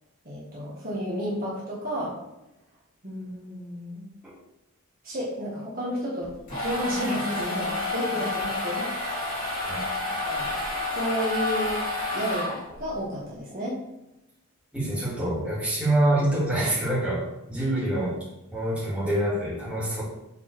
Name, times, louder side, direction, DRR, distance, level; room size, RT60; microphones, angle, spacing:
voice 1, 0.2-2.1 3.0-4.0 5.0-6.3 6.6-8.9 10.2-10.5 10.9-11.8 12.1-13.8, equal, 40° right, -6 dB, 1.6 m, -31 dB
sound 1, 6.2-12.9, left 2 dB, 40° left, 2.4 m, -30 dB
voice 2, 14.7-18.2 18.5-20.0, right 1 dB, 5° right, -9 dB, 2.4 m, -26 dB
7.0 x 4.1 x 4.7 m, 0.89 s
head